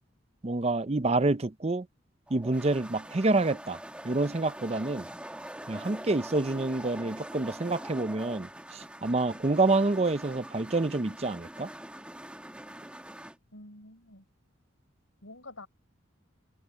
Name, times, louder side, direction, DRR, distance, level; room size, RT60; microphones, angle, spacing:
voice 1, 0.4-1.9 2.3-3.8 4.0-5.1 5.7-11.7, right 2 dB, 30° right, 0.6 m, -27 dB
sound 1, 2.3-13.4, right 1 dB, 5° right, 2.0 m, -44 dB
voice 2, 13.5-14.2 15.2-15.7, left 2 dB, 85° left, 6.0 m, -47 dB
open air
head